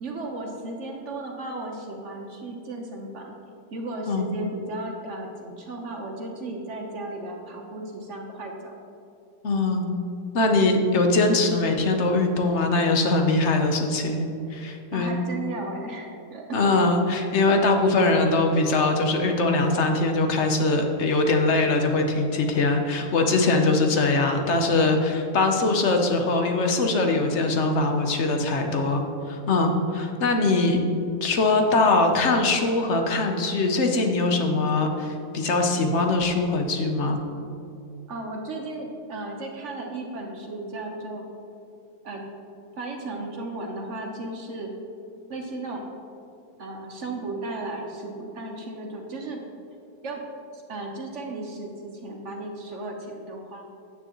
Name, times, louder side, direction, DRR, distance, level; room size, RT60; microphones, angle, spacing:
voice 1, 0.0-3.3 3.7-8.7 14.9-16.6 38.1-41.3 42.0-42.2 42.8-44.7 45.3-45.9 46.6-49.4 50.0-50.2 50.5-53.7, right 2 dB, 55° right, 1 dB, 1.0 m, -35 dB
voice 2, 9.4-9.9 10.3-15.1 16.5-30.8 31.2-37.2, left 3 dB, 55° left, 4 dB, 0.9 m, -22 dB
9.1 x 7.9 x 3.0 m, 2.6 s
omnidirectional pair, 1.7 m